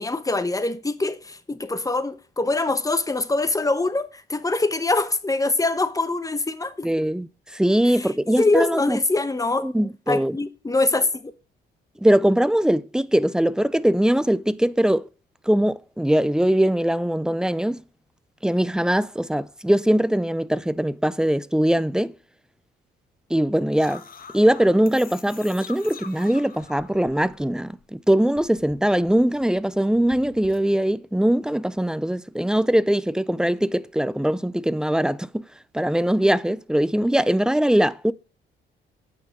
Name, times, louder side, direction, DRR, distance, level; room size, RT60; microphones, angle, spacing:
voice 1, 0.0-6.9 7.9-9.7 10.1-11.3, left 2 dB, 15° left, 1.0 m, -24 dB
voice 2, 6.8-9.0 9.6-10.4 12.0-15.1 15.5-17.8 18.4-22.1 23.3-24.0 24.3-35.4 35.7-38.1, right 1 dB, 5° right, 0.5 m, -21 dB
sound 1, 23.8-27.8 28.1-30.6, left 6 dB, 45° left, 1.5 m, -45 dB
8.7 x 5.7 x 5.9 m
cardioid pair, 90°, 20 cm